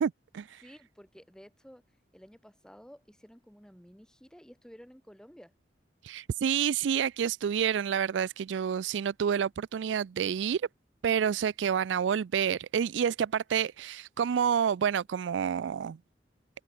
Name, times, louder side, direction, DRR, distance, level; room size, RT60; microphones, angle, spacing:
voice 1, 0.0-0.6 6.0-10.7 11.0-16.0, right 8 dB, 90° right, 0.4 m, -29 dB
voice 2, 0.6-1.8 2.1-5.5, equal, 5° left, 1.9 m, -53 dB
head